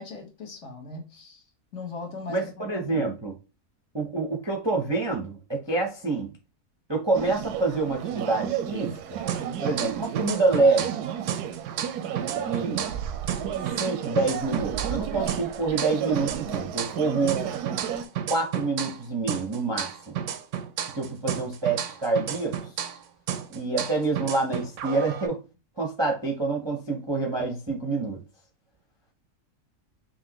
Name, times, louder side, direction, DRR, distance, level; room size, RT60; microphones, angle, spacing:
voice 1, 0.0-1.4 1.7-3.1, left 3 dB, 50° left, 1.3 m, -39 dB
voice 2, 2.3-3.3 3.9-6.3 6.9-9.2 9.6-10.9 12.4-12.9 13.8-17.5 18.3-20.2 21.0-22.6 23.5-25.4 25.8-28.2, right 3 dB, 25° right, 0.6 m, -27 dB
sound 1, 7.1-18.0, right 9 dB, 85° right, 1.1 m, -32 dB
sound 2, 9.3-11.0 11.3-15.0 15.3-19.0 19.3-23.0 23.3-25.3, right 9 dB, 65° right, 0.8 m, -32 dB
5.7 x 2.8 x 2.9 m
omnidirectional pair, 1.7 m